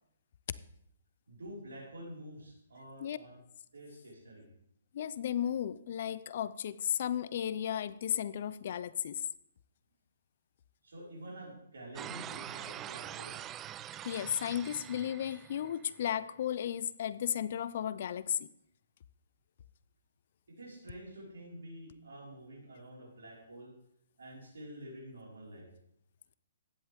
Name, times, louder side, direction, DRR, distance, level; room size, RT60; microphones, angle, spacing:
voice 1, 1.3-3.4 3.7-4.4 10.8-13.4 20.6-23.7 24.2-25.7, right 1 dB, 80° right, -4 dB, 5.0 m, -48 dB
voice 2, 4.9-9.2 14.0-18.5, left 10 dB, 55° left, 16 dB, 0.6 m, -34 dB
sound 1, 12.0-16.1, right 11 dB, 20° right, 0.4 m, -44 dB
15.5 x 10.5 x 3.6 m, 0.72 s
hypercardioid pair, 130°, 0 cm